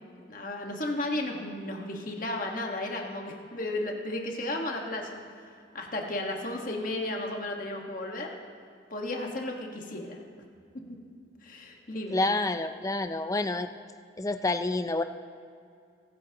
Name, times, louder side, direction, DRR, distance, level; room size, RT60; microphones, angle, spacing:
voice 1, 0.2-8.4 8.9-10.2 11.4-12.3, left 1 dB, 45° left, 1 dB, 1.5 m, -34 dB
voice 2, 12.1-13.7 14.2-15.0, left 2 dB, 15° left, 9 dB, 0.4 m, -28 dB
22.5 x 11.0 x 2.9 m, 2.4 s
head